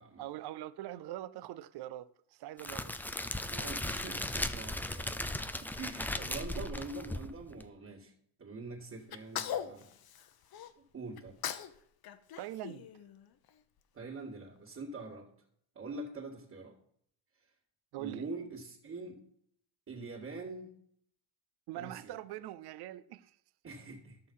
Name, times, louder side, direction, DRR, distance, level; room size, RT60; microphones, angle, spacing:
voice 1, 0.2-3.0 12.4-12.9 17.9-18.2 21.7-23.4, right 14 dB, 50° right, 0.6 m, -43 dB
Crackle, 2.6-7.6, left 1 dB, 5° left, 0.4 m, -37 dB
voice 2, 3.5-8.1 8.4-9.9 10.9-11.4 13.9-15.3 15.7-16.8 17.4-17.5 18.0-19.2 19.9-20.7 21.8-22.2 23.6-24.2, right 3 dB, 30° right, 2.2 m, -44 dB
Sneeze, 9.1-10.7 11.2-11.8 12.0-13.5, left 9 dB, 45° left, 1.0 m, -40 dB
13.5 x 6.5 x 5.5 m
cardioid pair, 115°, 50 cm